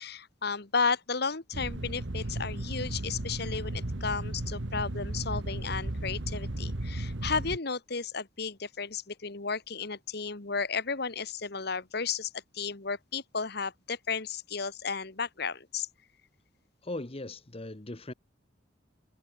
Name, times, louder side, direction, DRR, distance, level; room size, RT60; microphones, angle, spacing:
voice 1, 0.0-15.9, left 5 dB, 55° left, 1.6 m, -33 dB
sound 1, 1.5-7.6, right 1 dB, 75° right, 1.7 m, -35 dB
voice 2, 16.8-18.1, left 2 dB, 30° left, 1.2 m, -39 dB
head